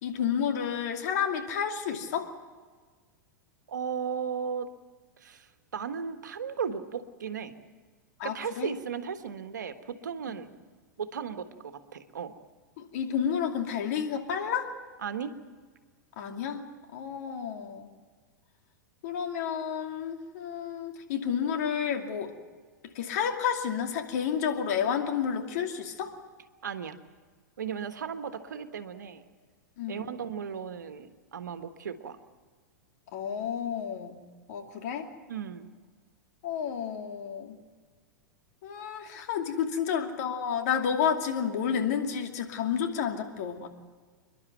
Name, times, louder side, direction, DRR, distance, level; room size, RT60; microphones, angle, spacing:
voice 1, 0.0-2.3 8.2-8.7 12.8-14.7 16.2-16.6 16.9-17.9 19.0-22.3 22.8-26.1 29.8-30.1 33.1-34.2 34.5-35.1 36.4-37.6 38.6-43.7, left 8 dB, 55° left, 4 dB, 2.5 m, -30 dB
voice 2, 3.7-4.7 5.2-7.5 8.2-10.5 11.0-12.3 15.0-15.3 26.6-27.0 27.6-29.2 29.9-32.2 35.3-35.7, right 7 dB, 70° right, 9 dB, 1.4 m, -36 dB
28.5 x 11.5 x 9.2 m, 1.5 s
figure-of-eight pair, 95°, 10 cm